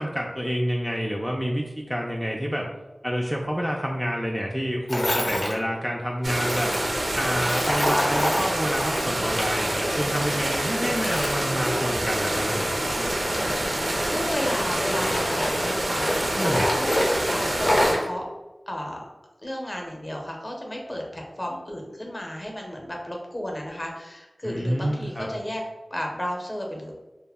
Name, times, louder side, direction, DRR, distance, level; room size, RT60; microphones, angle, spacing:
voice 1, 0.0-2.7 3.0-6.7 7.2-12.8 16.4-16.6 24.4-25.3, equal, ahead, -2 dB, 0.3 m, -28 dB
Tools, 4.9-5.5 6.4-9.7 10.0-12.3 12.9-14.5 14.9-18.1, left 1 dB, 70° left, 0.6 m, -28 dB
voice 2, 5.1-5.6 12.9-18.2 18.7-19.0 19.4-25.6 25.9-26.9, equal, 35° left, 0 dB, 0.6 m, -33 dB
sound 1, 6.2-17.9, right 1 dB, 65° right, 0.5 m, -26 dB
2.2 x 2.0 x 3.4 m, 1.1 s
wide cardioid pair, 55°, 0 cm